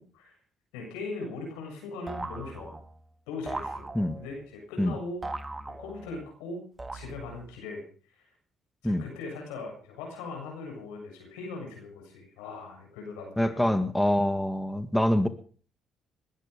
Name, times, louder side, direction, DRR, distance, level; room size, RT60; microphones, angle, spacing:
voice 1, 0.7-2.7 3.3-3.8 4.2-5.2 5.8-6.6 6.9-7.8 8.1-8.2 8.8-13.8, left 3 dB, 90° left, 2 dB, 7.3 m, -39 dB
sound 1, 2.1-3.0 3.5-4.4 5.2-6.2 6.8-7.5, right 2 dB, 20° right, 1.9 m, -39 dB
voice 2, 13.4-15.3, left 1 dB, 5° left, 10 dB, 1.9 m, -25 dB
21.5 x 12.0 x 5.2 m, 0.42 s
supercardioid pair, 60°, 0 cm